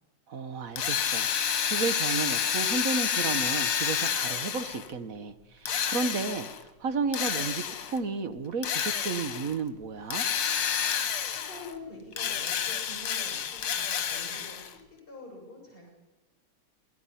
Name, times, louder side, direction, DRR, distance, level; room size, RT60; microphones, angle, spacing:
voice 1, 0.3-1.3 1.6-10.3, right 4 dB, 55° right, 11 dB, 1.0 m, -33 dB
Drill, 0.8-4.9 5.7-6.6 7.1-8.0 8.6-9.5 10.1-11.7 12.1-14.7, left 8 dB, 75° left, 2.2 m, -29 dB
voice 2, 11.3-15.9, left 2 dB, 25° left, -2 dB, 7.4 m, -46 dB
28.0 x 18.5 x 5.7 m, 1.0 s
omnidirectional pair, 2.4 m